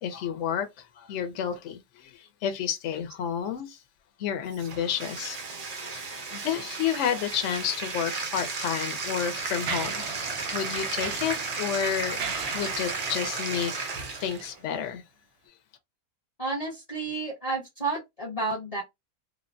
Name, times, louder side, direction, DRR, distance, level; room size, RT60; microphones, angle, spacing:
voice 1, 0.0-3.8 4.2-5.4 5.8-6.0 6.3-10.1 10.5-12.2 12.5-13.8 14.2-15.0, left 8 dB, 65° left, 0.8 m, -30 dB
Bathtub (filling or washing), 4.5-14.5, right 4 dB, 85° right, 0.3 m, -34 dB
Mechanisms, 8.9-14.6, right 5 dB, 60° right, 0.7 m, -38 dB
voice 2, 16.4-18.8, right 3 dB, 30° left, 0.8 m, -31 dB
3.3 x 2.1 x 2.5 m
omnidirectional pair, 1.6 m